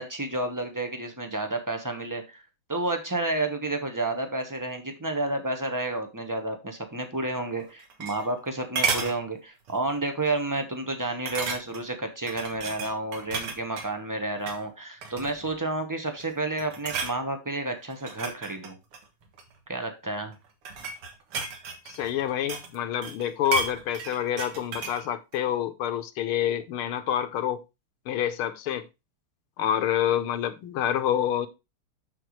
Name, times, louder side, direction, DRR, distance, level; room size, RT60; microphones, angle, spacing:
voice 1, 0.0-2.4 2.7-18.8 19.7-20.3, right 2 dB, 25° right, 0.4 m, -30 dB
sound 1, 7.6-8.5 8.8-9.2 9.7-9.9 10.2-10.3 11.3-11.9 12.3-13.9 14.4-14.6 15.0-15.5 16.1-16.3 16.6-17.2 17.9-19.5 20.3-22.8 23.0-25.0 25.3-25.4, right 5 dB, 80° right, 2.4 m, -33 dB
voice 2, 21.9-27.6 28.1-28.8 29.6-31.5, left 10 dB, 80° left, 1.7 m, -27 dB
7.7 x 6.8 x 3.1 m
omnidirectional pair, 2.4 m